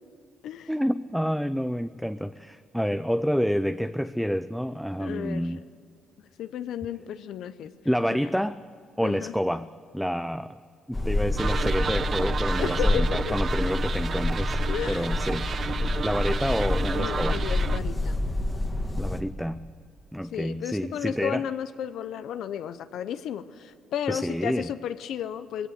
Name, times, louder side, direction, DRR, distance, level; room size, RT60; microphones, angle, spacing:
voice 1, 0.7-5.6 7.8-8.6 9.0-10.6 10.9-14.6 14.9-17.4 19.0-19.6 20.1-21.5 24.1-24.7, equal, ahead, 12 dB, 0.5 m, -28 dB
voice 2, 5.0-5.6 6.4-7.7 8.1-8.2 9.0-9.4 12.6-13.4 14.7-15.1 16.9-18.2 20.3-25.7, left 9 dB, 80° left, 11 dB, 0.7 m, -33 dB
sound 1, 10.9-19.2, left 1 dB, 15° left, 1.7 m, -27 dB
sound 2, 11.4-17.8, right 6 dB, 50° right, 0.7 m, -32 dB
19.0 x 17.0 x 8.0 m, 2.3 s
cardioid pair, 90°, 0 cm